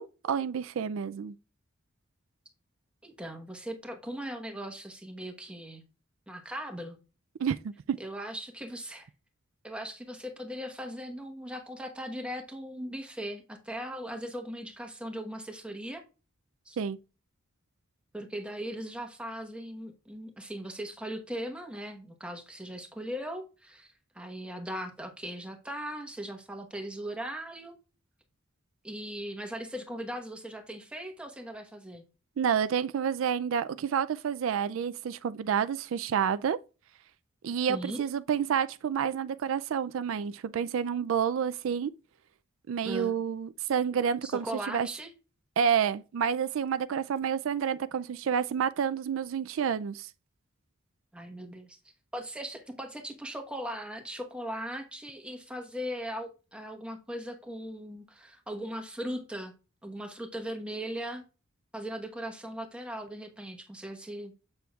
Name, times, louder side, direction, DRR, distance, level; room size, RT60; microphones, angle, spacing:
voice 1, 0.0-1.3 7.4-8.0 16.8-17.0 32.4-36.6 37.4-41.9 42.7-44.9 45.6-50.1, right 7 dB, 70° right, 0.3 m, -29 dB
voice 2, 3.0-5.8 6.3-7.0 8.0-9.1 9.6-16.0 16.6-16.8 18.1-27.8 28.8-32.0 37.7-38.0 42.8-43.1 44.2-45.1 51.1-51.8 52.1-59.5 59.8-61.2 61.7-64.3, equal, 5° right, 1.1 m, -39 dB
7.7 x 6.8 x 2.4 m
head